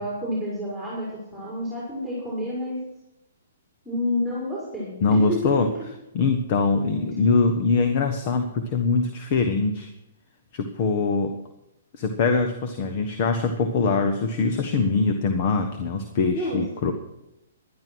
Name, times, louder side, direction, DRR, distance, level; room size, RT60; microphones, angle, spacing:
voice 1, 0.0-2.8 3.8-5.8 16.3-16.9, left 1 dB, ahead, -6 dB, 5.2 m, -29 dB
voice 2, 5.0-5.7 6.1-9.9 10.5-11.3 11.9-16.9, left 4 dB, 45° left, 7 dB, 1.3 m, -23 dB
12.0 x 11.0 x 6.2 m, 0.90 s
hypercardioid pair, 130°, 0 cm